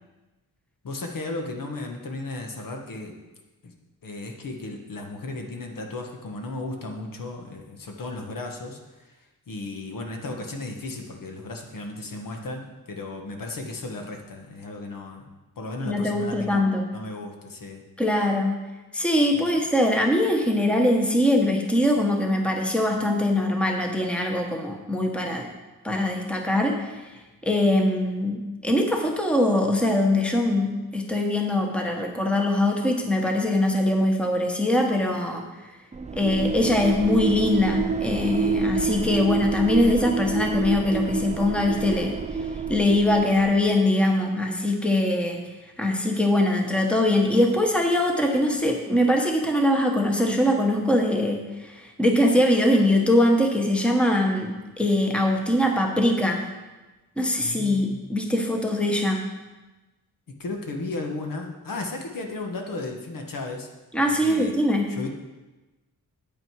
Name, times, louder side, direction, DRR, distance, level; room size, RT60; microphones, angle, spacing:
voice 1, 0.8-3.1 3.6-3.7 4.0-8.8 9.0-9.1 9.5-15.3 15.6-16.7 16.9-17.8 19.3-19.4 57.4-58.0 60.3-63.7 64.1-65.1, left 2 dB, 60° left, 2 dB, 1.4 m, -35 dB
voice 2, 15.8-16.9 18.0-18.6 18.9-25.5 25.8-26.9 27.4-35.4 36.1-42.2 42.7-45.4 45.8-56.4 57.2-59.2 63.9-64.9, left 1 dB, 5° left, 2 dB, 1.1 m, -22 dB
sound 1, 35.9-43.7, right 5 dB, 20° right, 0.4 m, -28 dB
9.1 x 8.7 x 4.7 m, 1.1 s
wide cardioid pair, 135°, 36 cm